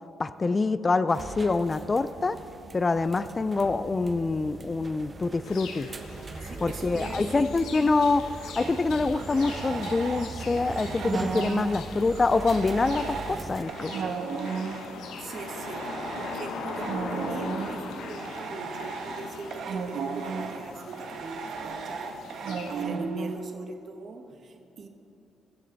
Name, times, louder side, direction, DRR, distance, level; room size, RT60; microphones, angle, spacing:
voice 1, 0.2-2.4 2.7-5.9 6.6-14.1, left 3 dB, 30° left, 14 dB, 0.4 m, -26 dB
sound 1, 1.1-13.6, right 3 dB, 30° right, 1.0 m, -41 dB
sound 2, 5.4-22.8, left 4 dB, 85° left, 1.3 m, -41 dB
voice 2, 6.4-7.4 9.7-9.8 15.1-24.9, right 4 dB, 50° right, 4 dB, 1.4 m, -41 dB
sound 3, 8.6-10.3 10.6-23.3, right 5 dB, 70° right, 1.1 m, -35 dB
22.0 x 7.5 x 4.0 m, 2.9 s
cardioid pair, 90°, 0 cm